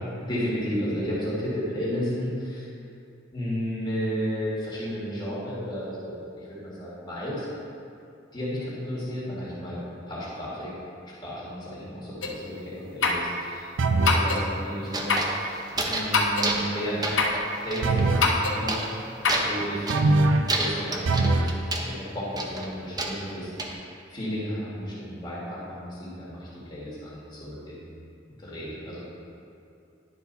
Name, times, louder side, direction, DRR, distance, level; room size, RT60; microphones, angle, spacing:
voice 1, 0.2-2.7 3.3-7.5 8.3-9.8 10.1-10.7 11.2-13.7 14.1-17.1 17.6-18.8 19.3-20.0 20.6-21.5 21.9-23.8 24.1-27.8 28.4-29.0, equal, 25° left, -8 dB, 1.9 m, -33 dB
sound 1, 12.2-12.4 13.0-13.3 14.0-14.4 15.1-15.3 16.1-16.5 17.2-17.4 18.2-18.6 19.2-19.5, left 3 dB, 90° left, 0.9 m, -23 dB
sound 2, 13.8-14.3 17.8-18.4 19.9-20.6 21.1-21.6, right 2 dB, 80° right, 0.4 m, -22 dB
sound 3, 14.9-16.1 16.4-16.8 17.0-18.0 18.7-19.0 19.3-20.1 20.5-21.9 22.4-23.7, right 2 dB, 20° right, 0.7 m, -30 dB
11.0 x 4.7 x 4.0 m, 2.6 s
head